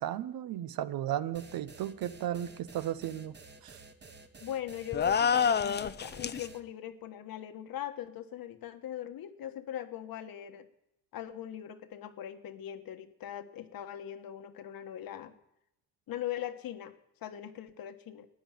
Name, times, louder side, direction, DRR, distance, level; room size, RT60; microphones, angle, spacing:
voice 1, 0.0-3.3 3.6-3.8, right 12 dB, 65° right, 14 dB, 0.9 m, -35 dB
sound 1, 1.3-6.6, right 3 dB, 25° right, 1.5 m, -52 dB
voice 2, 4.4-10.7 11.1-15.3 16.1-16.9 17.2-18.3, left 11 dB, 65° left, 8 dB, 1.4 m, -40 dB
sound 2, 4.9-6.5, left 7 dB, 25° left, 0.6 m, -27 dB
13.5 x 9.4 x 9.1 m, 0.85 s
cardioid pair, 100°, 38 cm